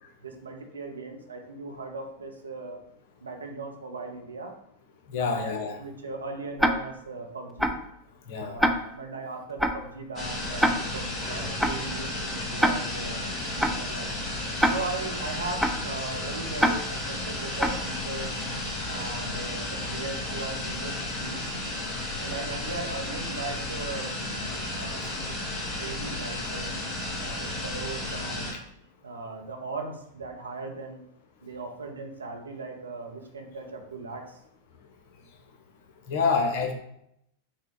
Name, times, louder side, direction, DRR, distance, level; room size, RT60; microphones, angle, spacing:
voice 1, 0.2-2.8 3.2-4.5 5.2-5.5 5.8-7.8 8.4-13.2 13.6-14.1 14.7-18.4 18.9-21.4 22.2-24.1 24.7-25.0 25.8-26.8 27.2-28.5 29.0-31.0 31.4-34.4, right 3 dB, 75° right, 3 dB, 0.7 m, -38 dB
voice 2, 5.1-5.8 8.3-8.6 36.1-36.7, left 5 dB, 50° left, 3 dB, 0.7 m, -27 dB
Tick-tock, 6.6-6.7 7.6-7.7 8.6-8.7 9.6-9.7 10.6-10.7 11.6-11.7 12.6-12.7 13.6-13.7 14.6-14.7 15.6-15.7 16.6-16.7 17.6-17.7, equal, ahead, 0.3 m, -22 dB
sound 1, 10.2-28.5, left 1 dB, 20° left, 1.2 m, -33 dB
5.4 x 2.2 x 3.6 m, 0.77 s
figure-of-eight pair, 90°, 0 cm